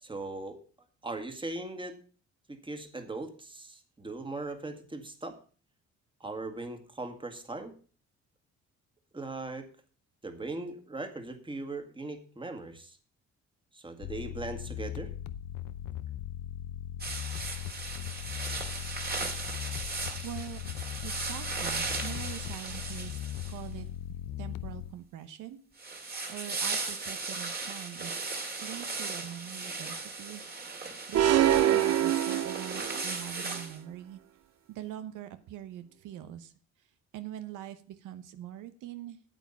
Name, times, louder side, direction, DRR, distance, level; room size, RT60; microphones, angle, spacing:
voice 1, 0.0-0.6 1.0-2.0 2.5-5.4 6.2-7.7 9.1-9.7 10.2-13.0 13.7-15.1, right 2 dB, 15° right, 6 dB, 1.9 m, -39 dB
sound 1, 14.0-25.0, left 12 dB, 85° left, 0.7 m, -39 dB
Clothing Rustle Nylon, 17.0-23.8 25.8-33.8, right 3 dB, 30° right, 2.3 m, -37 dB
voice 2, 20.2-20.7 21.0-23.2 23.5-23.9 24.4-25.6 26.3-28.3 28.6-30.7 31.1-34.2 34.7-36.5 37.1-39.2, right 11 dB, 90° right, 10 dB, 0.9 m, -43 dB
sound 2, 31.1-33.1, right 11 dB, 55° right, 0.7 m, -25 dB
9.1 x 8.4 x 5.7 m, 0.39 s
cardioid pair, 90°, 30 cm